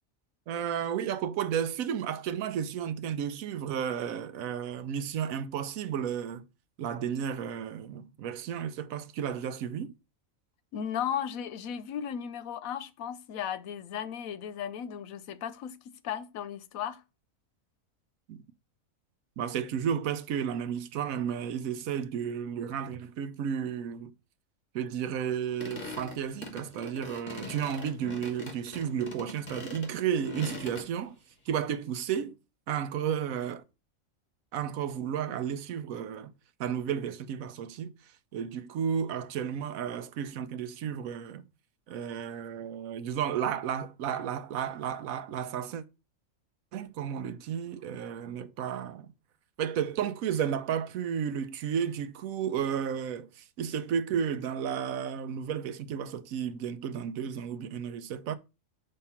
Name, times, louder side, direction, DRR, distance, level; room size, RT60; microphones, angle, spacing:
voice 1, 0.5-6.5 6.8-9.9 18.3-18.4 19.4-24.1 24.7-31.2 31.5-32.4 32.7-33.6 34.5-36.3 36.6-41.4 41.9-45.8 46.7-49.1 49.6-58.4, right 8 dB, 85° right, 1.1 m, -33 dB
voice 2, 10.7-17.0, left 9 dB, 85° left, 1.1 m, -36 dB
sound 1, 25.6-30.9, left 2 dB, 40° left, 1.5 m, -42 dB
5.4 x 3.6 x 5.6 m
omnidirectional pair, 1.4 m